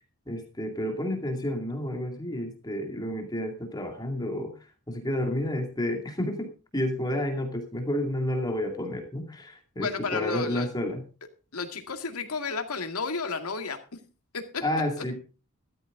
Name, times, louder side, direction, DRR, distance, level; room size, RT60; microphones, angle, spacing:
voice 1, 0.3-4.5 4.9-6.5 6.7-11.0 14.6-15.2, left 1 dB, 20° left, 3 dB, 2.3 m, -30 dB
voice 2, 9.8-10.7 11.5-13.8 14.3-14.6, left 4 dB, 80° left, 6 dB, 2.1 m, -32 dB
14.0 x 13.0 x 3.7 m, 0.33 s
head